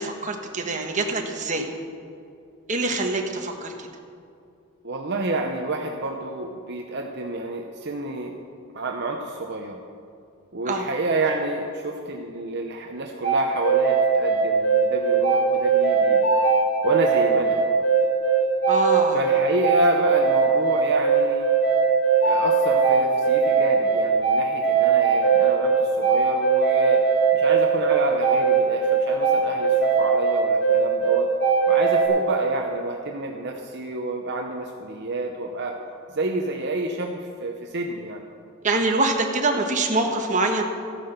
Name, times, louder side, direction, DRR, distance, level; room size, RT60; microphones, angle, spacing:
voice 1, 0.0-1.7 2.7-3.9 10.7-10.9 18.7-19.2 38.6-40.6, right 2 dB, 35° right, 2 dB, 1.4 m, -24 dB
voice 2, 4.8-8.4 8.7-9.8 10.5-16.2 16.8-17.6 19.1-21.5 22.2-27.1 27.3-31.3 31.7-35.8 36.1-38.2 39.5-39.6, right 2 dB, 50° right, 2 dB, 0.9 m, -29 dB
sound 1, 13.2-32.1, right 5 dB, 55° left, 3.3 m, -20 dB
14.5 x 10.0 x 6.7 m, 2.5 s
head